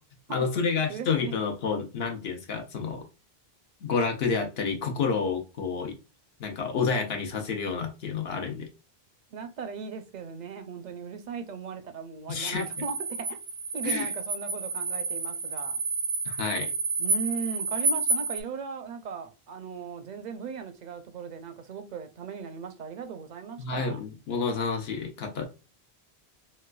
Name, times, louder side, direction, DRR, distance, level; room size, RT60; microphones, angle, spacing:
voice 1, 0.3-3.0 3.8-5.9 6.4-8.7 12.3-12.6 13.8-14.1 16.3-16.7 23.6-25.5, left 5 dB, 75° left, 0.9 m, -29 dB
voice 2, 0.9-1.4 9.3-13.4 13.7-15.8 17.0-24.0, right 5 dB, 55° right, 0.5 m, -38 dB
sound 1, 12.5-18.4, right 3 dB, 80° right, 0.9 m, -30 dB
4.2 x 2.2 x 2.3 m
omnidirectional pair, 1.0 m